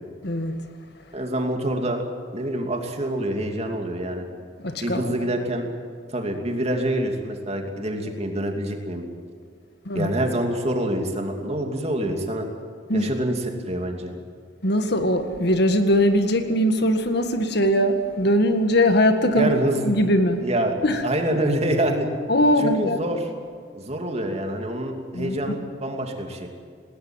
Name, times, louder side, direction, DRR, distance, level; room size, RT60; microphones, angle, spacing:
voice 1, 0.2-0.6 4.6-5.1 9.9-10.1 12.9-13.1 14.6-19.5 19.8-20.5 20.8-21.0 22.3-23.1 25.1-25.4, equal, 60° left, 1.9 m, -21 dB
voice 2, 1.1-2.0 2.3-4.2 4.8-5.7 6.1-9.0 9.9-12.5 12.9-14.1 19.3-19.9 20.4-20.7 21.0-22.1 22.6-23.2 23.7-26.5, right 1 dB, 35° right, 2.8 m, -26 dB
19.5 x 19.5 x 9.0 m
head